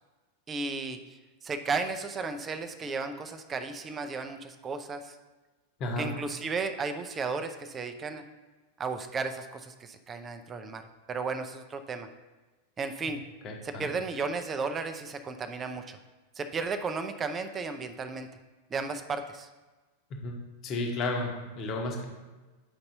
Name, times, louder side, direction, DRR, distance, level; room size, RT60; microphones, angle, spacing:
voice 1, 0.5-5.2 6.0-8.2 8.8-10.8 11.1-12.1 12.8-13.2 13.6-16.0 16.4-18.3 18.7-19.5, right 4 dB, 20° right, 8 dB, 0.5 m, -34 dB
voice 2, 13.4-13.9 20.2-20.4 20.6-22.0, left 2 dB, 35° left, 1 dB, 1.2 m, -32 dB
8.8 x 5.3 x 2.8 m, 1.2 s
figure-of-eight pair, 90°, 0 cm